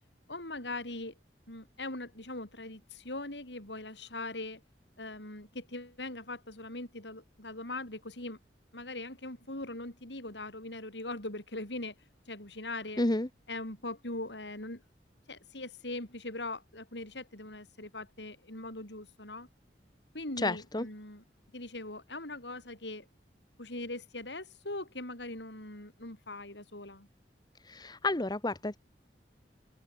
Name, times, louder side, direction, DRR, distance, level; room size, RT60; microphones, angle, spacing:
voice 1, 0.3-1.1 1.5-4.6 5.0-8.4 8.7-12.0 12.3-13.0 13.5-14.8 15.3-19.5 20.1-21.2 21.5-23.1 23.6-27.1, left 2 dB, 80° left, 6.9 m, -41 dB
voice 2, 13.0-13.3 20.4-20.9 27.6-28.8, left 2 dB, 25° left, 1.2 m, -30 dB
open air
head